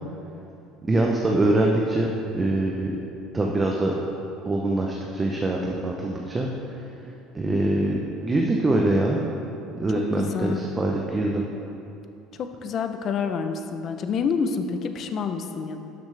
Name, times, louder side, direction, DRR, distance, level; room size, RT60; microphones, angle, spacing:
voice 1, 0.8-2.1 2.3-2.9 3.3-3.9 4.4-6.5 7.3-9.2 9.8-11.4, right 2 dB, 20° right, -1 dB, 0.8 m, -23 dB
voice 2, 10.2-10.6 12.4-15.8, left 5 dB, 45° left, 7 dB, 0.7 m, -28 dB
12.0 x 7.1 x 3.4 m, 2.8 s
cardioid pair, 120°, 0 cm